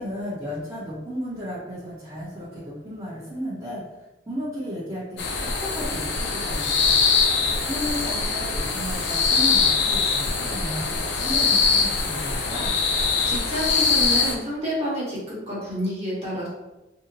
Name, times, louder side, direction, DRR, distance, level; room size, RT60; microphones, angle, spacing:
voice 1, 0.0-3.8 4.3-7.0 7.6-12.8, equal, 15° right, -12 dB, 0.8 m, -34 dB
sound 1, 5.2-14.3, left 5 dB, 85° left, 0.5 m, -23 dB
voice 2, 13.2-16.5, equal, 35° right, -7 dB, 1.1 m, -29 dB
2.8 x 2.1 x 3.8 m, 1.0 s
head